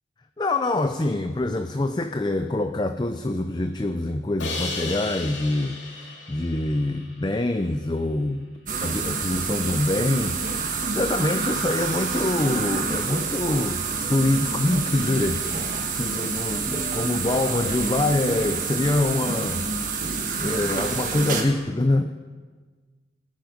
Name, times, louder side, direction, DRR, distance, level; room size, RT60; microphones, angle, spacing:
voice 1, 0.4-8.5 8.8-19.7 20.4-22.1, left 2 dB, 25° left, 8 dB, 0.4 m, -25 dB
Crash cymbal, 4.4-7.5, left 3 dB, 70° left, 2.7 m, -35 dB
sound 1, 8.7-21.4, right 4 dB, 45° right, 1.6 m, -28 dB
19.0 x 9.3 x 5.3 m, 1.4 s
head